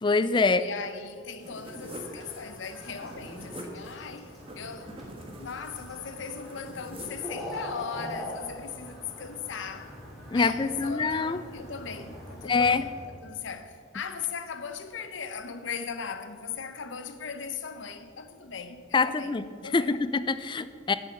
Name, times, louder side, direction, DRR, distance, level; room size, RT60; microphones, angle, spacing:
voice 1, 0.0-0.7 10.3-11.4 12.4-12.9 18.9-19.5 19.7-20.9, left 4 dB, 25° left, 0.3 m, -25 dB
voice 2, 0.5-10.0 10.3-19.9, left 6 dB, 70° left, 0.7 m, -38 dB
sound 1, 1.4-7.3, right 1 dB, 30° right, 1.3 m, -45 dB
sound 2, 1.7-13.0, equal, ahead, 2.6 m, -43 dB
9.3 x 6.9 x 7.7 m
head